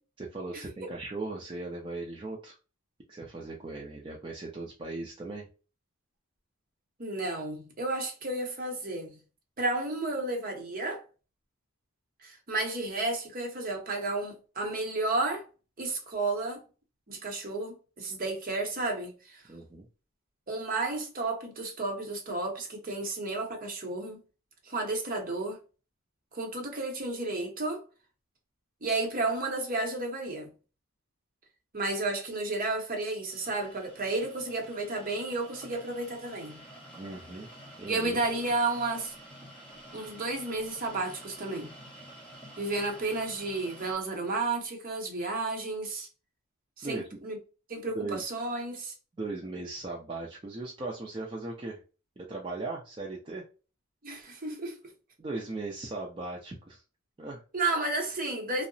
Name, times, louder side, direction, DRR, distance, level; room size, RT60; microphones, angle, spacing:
voice 1, 0.2-2.6 3.1-5.5 19.5-19.9 37.0-37.5 37.8-38.2 46.8-47.2 47.9-48.2 49.2-51.8 52.2-53.4 55.2-56.8 57.2-57.4, right 2 dB, 25° right, 0.4 m, -38 dB
voice 2, 7.0-9.2 9.6-11.0 12.2-15.5 15.8-16.6 17.1-19.4 20.5-24.2 24.6-25.6 26.3-27.8 28.8-30.5 31.7-36.6 37.9-39.1 39.9-41.7 42.6-46.1 46.8-47.4 47.7-48.9 54.0-54.8 57.5-58.7, right 2 dB, 45° right, 0.8 m, -32 dB
sound 1, 33.3-43.9, right 1 dB, 5° left, 1.1 m, -49 dB
2.7 x 2.0 x 2.6 m
head